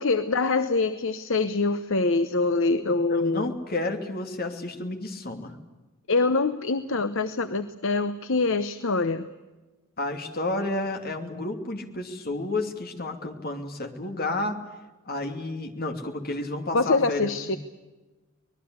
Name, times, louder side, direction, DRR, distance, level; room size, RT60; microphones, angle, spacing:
voice 1, 0.0-3.5 6.1-9.3 16.7-17.6, left 3 dB, 60° left, 11 dB, 1.0 m, -24 dB
voice 2, 2.8-5.5 10.0-14.6 15.1-17.6, left 2 dB, 45° left, 5 dB, 2.9 m, -31 dB
25.0 x 20.0 x 8.2 m, 1.2 s
head